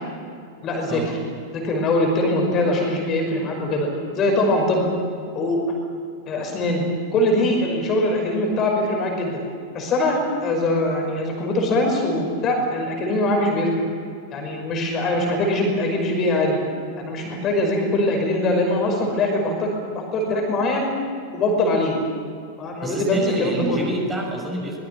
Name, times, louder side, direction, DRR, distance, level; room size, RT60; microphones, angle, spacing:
voice 1, 0.6-1.0 1.5-3.9 4.2-4.9 5.3-5.6 6.3-6.8 7.1-9.4 9.7-13.7 14.3-16.6 17.0-20.9 21.3-22.0 22.6-23.9, left 1 dB, 30° left, 1 dB, 5.6 m, -22 dB
voice 2, 22.8-24.8, right 1 dB, 15° right, 0 dB, 6.2 m, -28 dB
23.5 x 20.0 x 7.8 m, 2.3 s
figure-of-eight pair, 90°, 0 cm